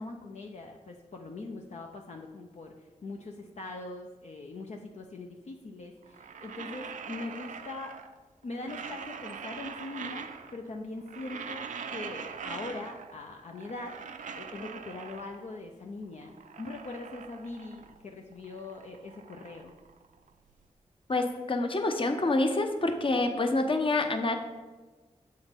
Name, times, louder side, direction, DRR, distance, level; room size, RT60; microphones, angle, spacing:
voice 1, 0.0-2.7 3.0-8.0 8.4-14.0 14.3-19.7, left 2 dB, 65° left, 1 dB, 0.6 m, -41 dB
sound 1, 6.0-8.2 8.5-10.7 11.0-13.2 13.5-15.6 16.0-18.0 18.3-20.5, right 6 dB, 80° right, 0.4 m, -43 dB
voice 2, 21.1-24.4, left 2 dB, 45° left, 6 dB, 0.8 m, -27 dB
7.2 x 3.8 x 5.2 m, 1.3 s
cardioid pair, 45°, 13 cm